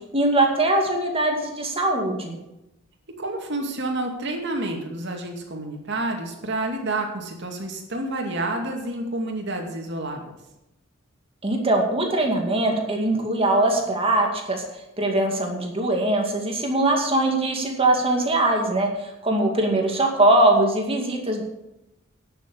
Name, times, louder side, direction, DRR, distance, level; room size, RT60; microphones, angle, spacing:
voice 1, 0.1-2.4 11.4-14.6 15.0-21.4, right 2 dB, 30° right, 2 dB, 2.3 m, -21 dB
voice 2, 3.2-10.4, right 2 dB, 60° right, 1 dB, 2.4 m, -29 dB
11.0 x 7.1 x 8.3 m, 0.92 s
head